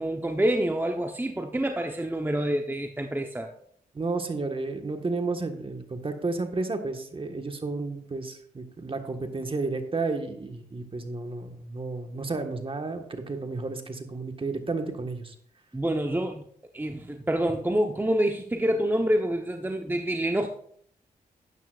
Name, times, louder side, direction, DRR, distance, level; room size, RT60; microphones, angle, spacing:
voice 1, 0.0-3.5 15.7-16.4 16.7-20.5, right 1 dB, 15° right, 4 dB, 0.9 m, -27 dB
voice 2, 3.9-15.3, right 3 dB, 35° right, 5 dB, 1.5 m, -32 dB
12.5 x 9.2 x 2.5 m, 0.64 s
cardioid pair, 55°, 16 cm